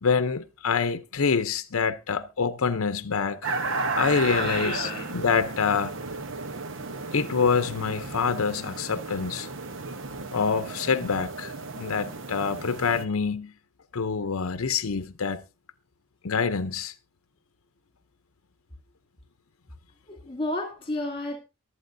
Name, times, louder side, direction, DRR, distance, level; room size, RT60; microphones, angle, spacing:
voice 1, 0.0-3.4 4.0-5.9 7.1-9.5 10.3-13.5 13.9-15.4 16.2-16.9, left 5 dB, 75° left, 0.7 m, -26 dB
sound 1, 3.4-13.0, right 3 dB, 60° right, 0.9 m, -34 dB
voice 2, 4.3-5.1 6.5-6.7 12.0-12.2 20.1-21.4, left 2 dB, 25° left, 2.5 m, -33 dB
23.5 x 8.5 x 2.6 m
head